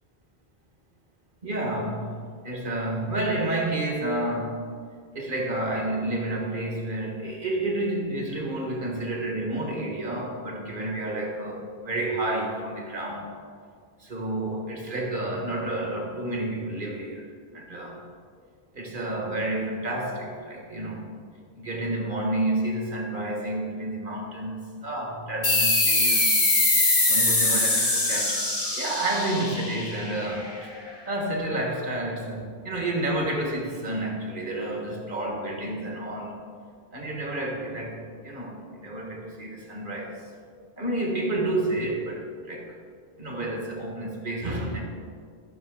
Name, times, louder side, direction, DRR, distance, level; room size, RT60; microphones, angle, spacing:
voice 1, 1.4-4.7 5.1-13.3 14.0-18.0 18.7-21.1 21.5-26.3 27.1-28.4 28.8-30.7 31.0-36.4 36.9-40.3 40.8-42.8 43.2-44.8, right 1 dB, 55° right, 0 dB, 1.6 m, -30 dB
sound 1, 25.4-30.6, left 2 dB, 35° left, 1.4 m, -23 dB
13.5 x 5.9 x 3.6 m, 2.1 s
omnidirectional pair, 1.0 m